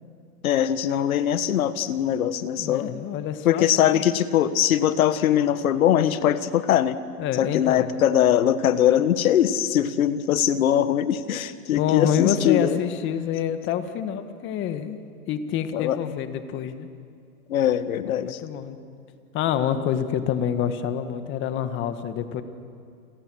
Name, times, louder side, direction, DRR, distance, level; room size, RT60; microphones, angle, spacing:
voice 1, 0.4-2.9 3.4-7.0 7.4-12.8 15.7-16.0 17.5-18.4, left 10 dB, 65° left, 13 dB, 1.6 m, -21 dB
voice 2, 2.6-4.0 7.2-7.9 11.7-15.0 15.3-16.9 18.1-18.8 19.3-22.4, left 9 dB, 25° left, 10 dB, 1.6 m, -27 dB
30.0 x 27.5 x 6.4 m, 2.4 s
hypercardioid pair, 140°, 46 cm